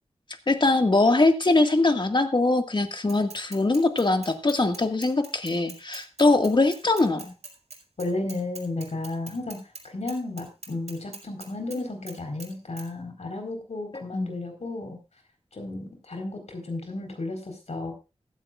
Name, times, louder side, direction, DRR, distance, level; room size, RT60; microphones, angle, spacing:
voice 1, 0.5-7.3 14.1-14.4, left 2 dB, 45° left, 6 dB, 1.9 m, -22 dB
Bicycle / Mechanisms, 3.1-9.8 10.1-11.8 12.1-12.5 12.8-12.9, right 3 dB, 80° right, 5.1 m, -43 dB
voice 2, 8.0-9.6 9.8-15.0 15.5-17.9, left 2 dB, 80° left, 4 dB, 4.4 m, -33 dB
15.5 x 14.5 x 2.5 m, 0.29 s
wide cardioid pair, 75°, 11 cm